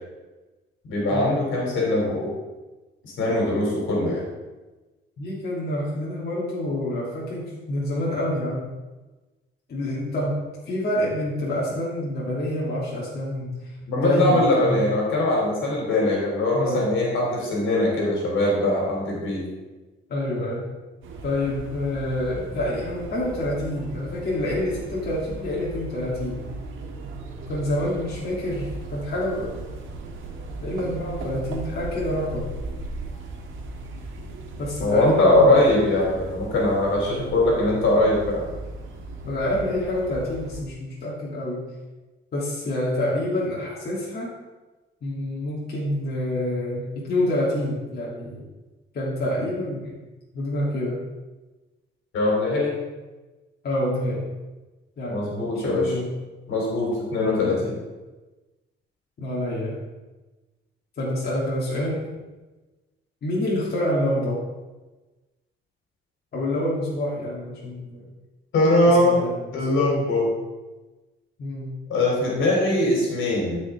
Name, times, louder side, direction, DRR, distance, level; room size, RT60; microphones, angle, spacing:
voice 1, 0.9-2.3 3.2-4.2 13.9-19.5 34.8-38.4 52.1-52.7 55.1-55.9 56.5-57.7 68.5-69.2 69.5-70.3 71.9-73.6, left 1 dB, 75° left, -3 dB, 3.3 m, -21 dB
voice 2, 5.2-8.7 9.7-10.4 10.7-13.5 14.0-14.8 16.5-16.9 20.1-20.7 21.2-26.4 27.5-29.5 30.6-32.5 34.6-35.6 39.2-41.6 42.3-44.3 45.0-48.4 48.9-49.9 50.3-51.0 53.6-54.2 55.0-56.1 57.1-57.6 59.2-59.7 61.0-62.0 63.2-64.4 66.3-68.0 68.8-69.6 71.4-71.8, left 1 dB, 55° left, -7 dB, 2.8 m, -27 dB
sound 1, 21.0-40.6, right 2 dB, 80° right, 1.5 m, -37 dB
12.5 x 5.7 x 3.6 m, 1.2 s
cardioid pair, 90°, 20 cm